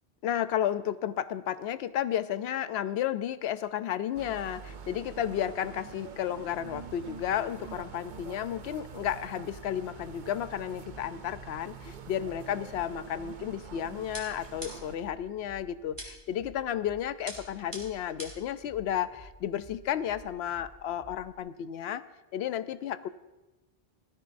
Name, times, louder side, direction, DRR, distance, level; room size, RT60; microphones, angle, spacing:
voice 1, 0.2-22.0 22.3-23.1, left 10 dB, 75° left, 13 dB, 0.8 m, -32 dB
sound 1, 4.1-15.0, right 6 dB, 50° right, 0.7 m, -46 dB
sound 2, 6.6-21.4, left 1 dB, 30° left, 3.0 m, -54 dB
sound 3, 14.1-15.1 16.0-16.4 17.3-18.5, equal, 20° right, 2.9 m, -43 dB
18.5 x 13.5 x 2.6 m, 1.1 s
omnidirectional pair, 1.1 m